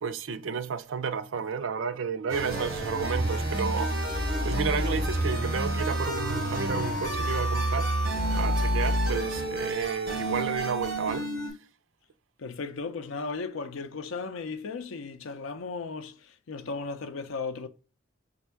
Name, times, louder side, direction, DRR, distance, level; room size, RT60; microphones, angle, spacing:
voice 1, 0.0-7.9 8.3-11.3, right 6 dB, 65° right, 0.4 m, -32 dB
sound 1, 2.3-11.5, right 1 dB, 50° right, 1.7 m, -29 dB
voice 2, 12.4-17.7, left 4 dB, 80° left, 0.5 m, -36 dB
3.4 x 2.6 x 4.5 m
head